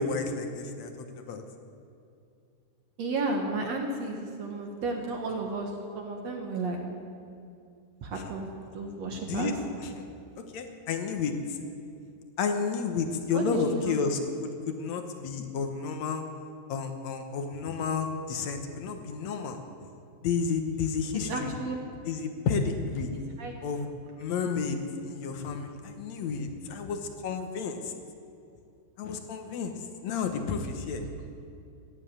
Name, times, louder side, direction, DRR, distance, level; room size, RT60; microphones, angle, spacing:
voice 1, 0.0-1.4 9.3-9.5 10.5-11.6 12.4-16.2 16.7-19.6 20.2-21.5 22.1-23.1 23.6-23.9 24.2-27.9 29.0-31.0, left 5 dB, 65° left, 6 dB, 1.9 m, -31 dB
voice 2, 3.0-6.8 8.0-8.5 8.7-9.5 13.3-14.0 21.3-21.8 23.1-23.5, right 3 dB, 60° right, 1 dB, 2.1 m, -33 dB
15.0 x 10.5 x 8.8 m, 2.5 s
omnidirectional pair, 4.1 m